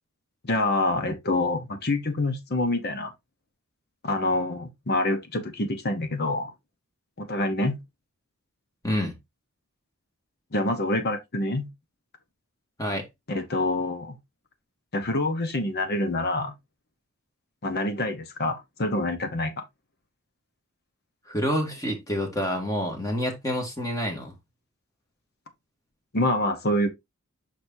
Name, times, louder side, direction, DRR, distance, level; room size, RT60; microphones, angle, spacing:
voice 1, 0.4-3.1 4.0-6.5 7.2-7.8 10.5-11.7 13.3-14.2 14.9-16.5 17.6-19.5 26.1-26.9, left 1 dB, 50° left, 1.0 m, -26 dB
voice 2, 8.8-9.2 12.8-13.1 21.3-24.3, equal, 15° left, 2.1 m, -28 dB
6.4 x 6.0 x 2.7 m
head